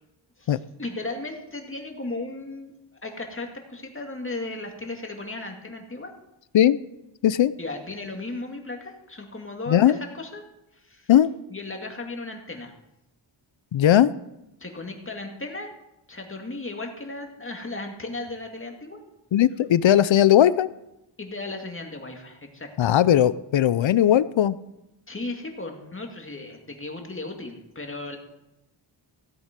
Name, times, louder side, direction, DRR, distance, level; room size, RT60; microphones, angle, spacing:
voice 1, 0.4-2.7 3.0-6.1 7.6-10.4 10.8-11.1 11.5-12.7 14.6-15.7 16.1-19.0 21.2-22.9 25.1-28.2, left 2 dB, 25° left, 3 dB, 2.2 m, -35 dB
voice 2, 9.7-10.0 11.1-11.3 13.7-14.1 19.3-20.7 22.8-24.6, left 11 dB, 70° left, 17 dB, 0.6 m, -18 dB
16.0 x 8.3 x 5.2 m, 0.90 s
wide cardioid pair, 95°, 48 cm